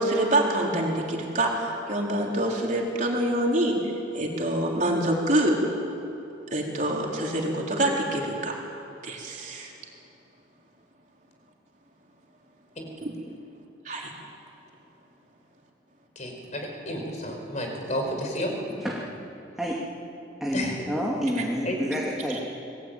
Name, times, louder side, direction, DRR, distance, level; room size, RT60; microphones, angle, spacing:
voice 1, 0.0-3.8 4.1-5.6 6.5-8.6 9.0-9.7 13.0-13.1 13.8-14.1, right 1 dB, 40° right, -1 dB, 4.1 m, -26 dB
voice 2, 16.1-18.5 20.5-20.9 21.6-21.8, equal, 40° left, 2 dB, 4.9 m, -31 dB
voice 3, 20.4-22.4, equal, ahead, -4 dB, 2.5 m, -28 dB
26.5 x 20.5 x 9.3 m, 2.9 s
head